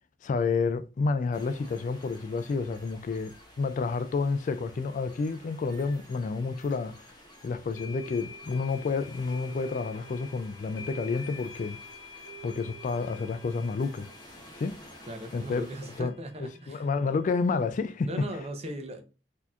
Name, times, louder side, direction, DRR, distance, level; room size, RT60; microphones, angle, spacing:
voice 1, 0.2-7.0 7.4-11.8 12.4-14.1 14.6-14.8 15.3-15.7 16.0-16.1 16.4-18.1, left 4 dB, 45° left, 0.3 m, -30 dB
sound 1, 1.3-16.0, equal, 25° left, 0.8 m, -52 dB
sound 2, 6.7-6.8 7.7-17.8, left 2 dB, 90° left, 1.0 m, -48 dB
voice 2, 15.1-16.9 18.0-19.0, equal, 35° right, 0.7 m, -38 dB
4.1 x 2.8 x 2.4 m
head